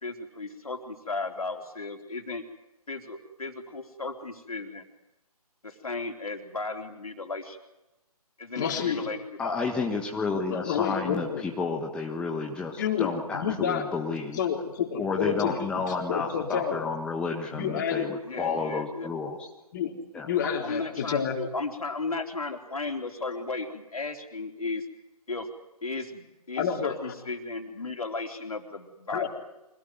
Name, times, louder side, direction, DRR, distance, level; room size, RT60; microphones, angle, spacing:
voice 1, 0.0-2.4 2.9-4.8 5.6-7.6 8.4-9.6 18.2-19.1 20.4-24.9 25.3-25.5 25.8-29.3, left 3 dB, 65° left, 4 dB, 3.8 m, -35 dB
voice 2, 8.6-9.1 10.5-11.4 12.7-13.9 14.4-15.8 16.1-16.8 17.5-18.1 19.7-19.9 20.2-21.4 26.6-27.1 29.1-29.3, left 7 dB, 30° left, 2 dB, 3.8 m, -29 dB
voice 3, 9.4-14.4 15.0-19.5 20.1-20.3, left 4 dB, 5° left, 0 dB, 1.4 m, -31 dB
25.5 x 17.5 x 9.4 m, 0.96 s
figure-of-eight pair, 145°, 20 cm